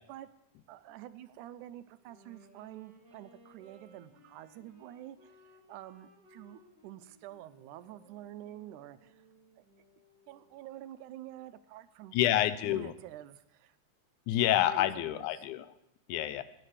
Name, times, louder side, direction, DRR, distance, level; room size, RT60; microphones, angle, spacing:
voice 1, 0.7-9.2 9.6-9.7 10.3-12.2 12.7-13.8 14.6-15.5, right 13 dB, 85° right, 13 dB, 2.0 m, -48 dB
Wind instrument woodwind instrument, 1.9-10.6, equal, 40° right, 2.3 m, -61 dB
voice 2, 12.1-12.9 14.3-15.7 16.1-16.4, left 13 dB, 85° left, 14 dB, 2.0 m, -28 dB
16.5 x 9.8 x 3.3 m, 0.82 s
omnidirectional pair, 3.5 m